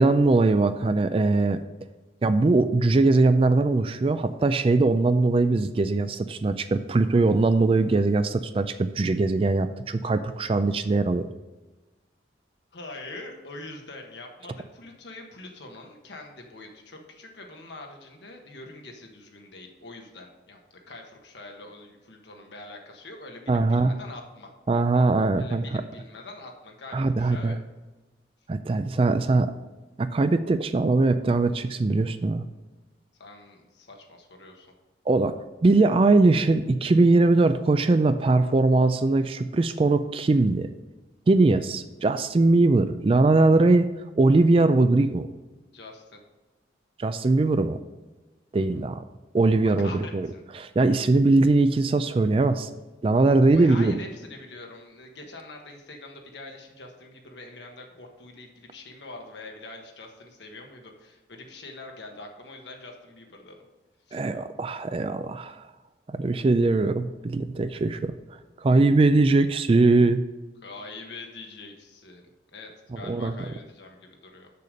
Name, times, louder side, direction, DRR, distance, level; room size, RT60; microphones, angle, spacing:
voice 1, 0.0-1.6 2.2-11.3 23.5-23.9 24.7-25.8 26.9-27.6 28.5-29.5 30.0-32.4 35.1-35.3 35.6-40.7 41.3-43.9 44.2-45.3 47.0-47.8 48.5-49.0 49.3-50.3 50.6-52.7 53.0-53.9 64.1-65.6 66.1-68.1 68.6-70.2 72.9-73.3, right 3 dB, 30° right, 11 dB, 0.3 m, -21 dB
voice 2, 12.7-20.6 20.9-24.5 25.4-27.6 33.2-34.7 45.7-46.2 49.5-50.4 53.5-63.6 64.1-64.2 70.6-72.3 72.5-74.5, left 2 dB, 80° left, 2 dB, 1.3 m, -44 dB
6.8 x 6.8 x 5.0 m, 1.2 s
head